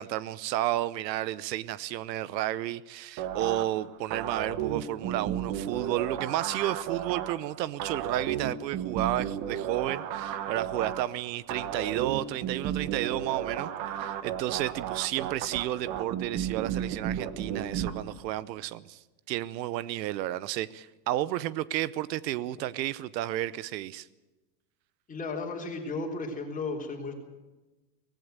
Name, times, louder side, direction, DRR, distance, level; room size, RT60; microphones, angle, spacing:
voice 1, 0.0-13.7 14.0-24.1, right 14 dB, 80° right, 18 dB, 0.9 m, -32 dB
sound 1, 3.2-17.9, right 9 dB, 40° right, 1.7 m, -34 dB
voice 2, 25.1-27.1, left 3 dB, 15° left, 1 dB, 3.6 m, -34 dB
18.5 x 16.5 x 9.2 m, 1.1 s
supercardioid pair, 155°, 50 cm